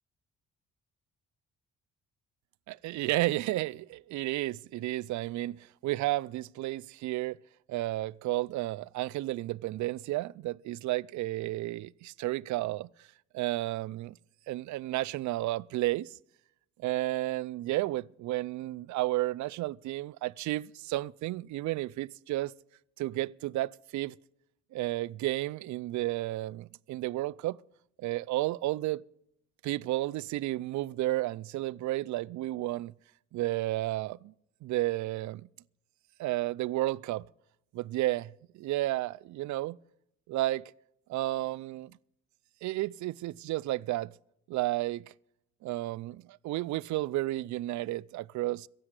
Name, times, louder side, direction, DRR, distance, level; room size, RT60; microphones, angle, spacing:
voice 1, 2.7-7.4 7.7-13.1 13.3-14.2 14.5-16.2 16.8-22.5 23.0-24.2 24.7-27.6 28.0-29.0 29.6-32.9 33.3-34.3 34.6-35.4 36.2-37.3 37.7-39.8 40.3-40.7 41.1-42.0 42.6-44.1 44.5-45.1 45.6-48.7, right 17 dB, 70° right, 0.4 m, -32 dB
16.5 x 7.4 x 7.9 m
cardioid pair, 90°, 30 cm